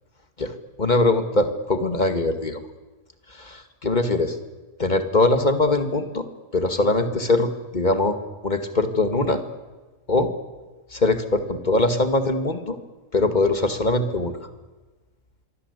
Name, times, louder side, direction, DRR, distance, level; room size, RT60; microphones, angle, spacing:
voice 1, 0.8-2.6 3.3-4.3 4.8-6.2 6.5-9.4 10.1-10.3 10.9-12.8 13.1-14.3, left 2 dB, 30° left, 8 dB, 2.3 m, -22 dB
26.0 x 23.5 x 8.3 m, 1.3 s
omnidirectional pair, 1.5 m